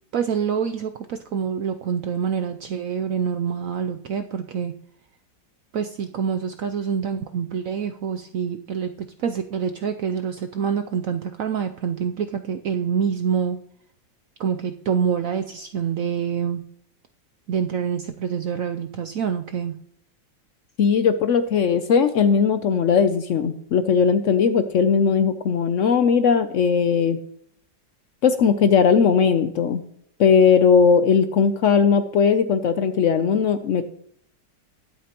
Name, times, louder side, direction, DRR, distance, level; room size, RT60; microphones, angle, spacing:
voice 1, 0.1-4.7 5.7-13.6 14.4-16.6 17.5-19.8, right 7 dB, 75° right, 8 dB, 0.7 m, -26 dB
voice 2, 20.8-27.2 28.2-29.8 30.2-33.9, left 6 dB, 75° left, 10 dB, 0.7 m, -18 dB
20.5 x 8.4 x 2.9 m, 0.66 s
omnidirectional pair, 2.0 m